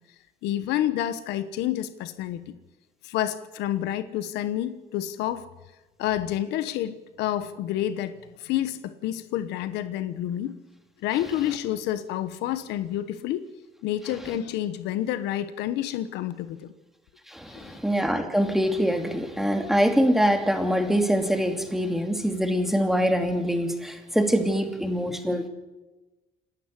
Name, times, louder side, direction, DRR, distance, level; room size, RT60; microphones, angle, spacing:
voice 1, 0.4-2.5 3.0-5.4 6.0-10.6 11.0-13.5 13.8-16.7 17.5-17.8, left 12 dB, 90° left, 1.2 m, -29 dB
voice 2, 17.3-25.5, equal, ahead, 2.7 m, -24 dB
28.0 x 12.0 x 8.3 m
cardioid pair, 110°, 17 cm